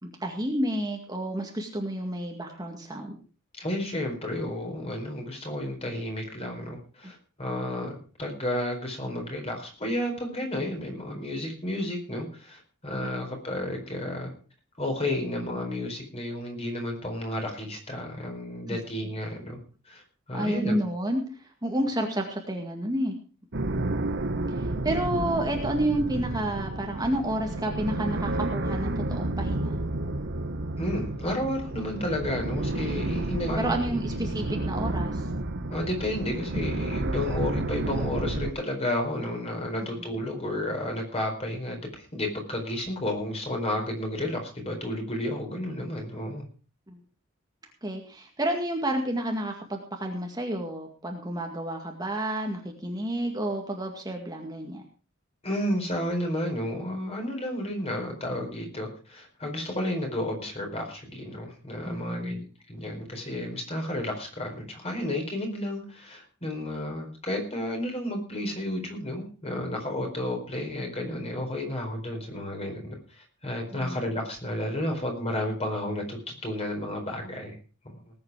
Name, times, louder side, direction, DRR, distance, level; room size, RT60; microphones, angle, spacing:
voice 1, 0.0-3.2 18.7-18.8 20.3-21.2 21.6-23.1 24.8-29.8 33.6-35.2 46.9-47.0 47.8-54.8 61.8-62.5 73.7-74.0, right 1 dB, 20° right, 2 dB, 2.0 m, -30 dB
voice 2, 3.6-14.3 14.8-19.6 19.9-20.7 30.8-34.2 35.7-46.5 55.4-62.4 62.7-77.6 77.9-78.0, left 1 dB, 30° left, 2 dB, 4.6 m, -32 dB
sound 1, 23.5-38.5, right 2 dB, 60° right, 1.2 m, -31 dB
19.0 x 8.6 x 4.9 m, 0.36 s
head